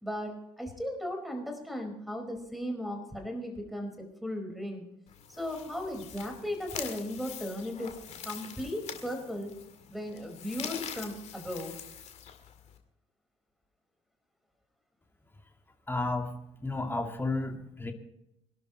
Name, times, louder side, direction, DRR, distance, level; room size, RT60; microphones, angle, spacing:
voice 1, 0.0-4.9 5.3-7.9 8.2-9.5 9.9-11.8, left 1 dB, ahead, 3 dB, 4.7 m, -36 dB
sound 1, 5.1-12.8, left 8 dB, 50° left, 2.0 m, -44 dB
voice 2, 15.9-17.9, left 2 dB, 15° left, 4 dB, 2.3 m, -32 dB
25.0 x 12.0 x 3.1 m, 0.83 s
figure-of-eight pair, 50°, 14 cm